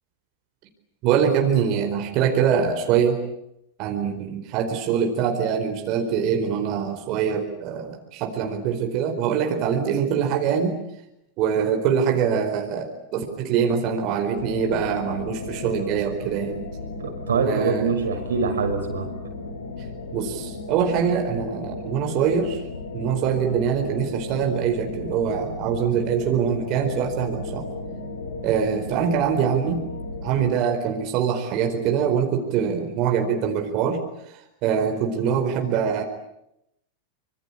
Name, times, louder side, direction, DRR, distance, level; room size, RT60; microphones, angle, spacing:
voice 1, 1.0-3.2 3.8-10.8 11.4-16.6 17.4-17.9 20.1-22.6 22.9-27.7 28.4-29.8 30.2-34.0 34.6-36.0, right 7 dB, 45° right, 4 dB, 4.6 m, -23 dB
sound 1, 14.4-30.5, left 3 dB, 90° left, 3.8 m, -35 dB
voice 2, 17.0-19.1, right 5 dB, 80° right, 5 dB, 6.1 m, -24 dB
26.0 x 24.5 x 8.7 m, 0.82 s
hypercardioid pair, 100°, 0 cm